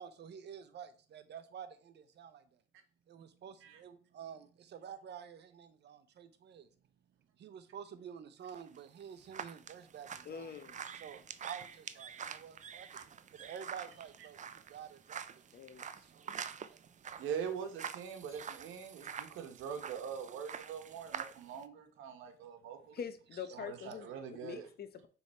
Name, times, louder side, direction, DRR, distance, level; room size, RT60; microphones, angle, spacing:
voice 1, 0.0-2.6 3.1-6.7 7.4-10.6 10.9-15.4 16.0-17.1 23.3-23.5, right 8 dB, 60° right, 0.8 m, -50 dB
sound 1, 8.5-21.6, right 7 dB, 40° right, 0.5 m, -47 dB
voice 2, 10.3-10.7 15.5-15.9 22.9-25.1, left 7 dB, 55° left, 0.8 m, -44 dB
voice 3, 17.2-23.0 23.5-24.7, right 7 dB, 85° right, 1.1 m, -43 dB
6.2 x 3.5 x 4.3 m
cardioid pair, 90°, 20 cm